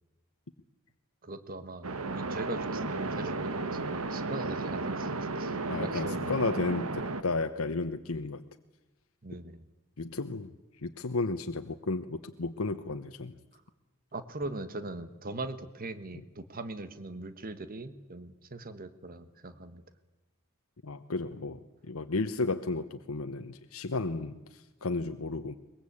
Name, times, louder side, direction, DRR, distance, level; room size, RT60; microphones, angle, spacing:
voice 1, 1.2-6.4 9.2-9.6 14.1-19.8, right 2 dB, 40° right, 12 dB, 1.4 m, -40 dB
sound 1, 1.8-7.2, right 3 dB, 85° right, 1.5 m, -34 dB
voice 2, 5.7-6.9 7.2-8.4 10.0-10.5 10.8-13.3 16.1-16.2 20.8-21.6 21.9-25.5, left 3 dB, 75° left, 7 dB, 1.0 m, -33 dB
22.5 x 21.5 x 8.6 m, 1.1 s
head